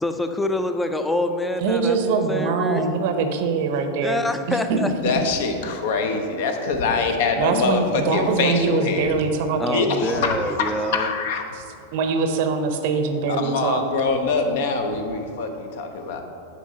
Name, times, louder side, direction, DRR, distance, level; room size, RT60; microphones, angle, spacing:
voice 1, 0.0-2.9 4.0-4.9 9.6-11.1, left 1 dB, 5° left, 8 dB, 0.5 m, -26 dB
voice 2, 1.6-4.2 4.5-5.1 7.4-10.0 11.9-13.9, right 4 dB, 50° right, 7 dB, 0.7 m, -23 dB
voice 3, 5.0-9.1 9.7-11.4 13.3-16.2, left 4 dB, 55° left, 5 dB, 0.8 m, -24 dB
10.5 x 4.5 x 4.2 m, 2.7 s
figure-of-eight pair, 90°, 0 cm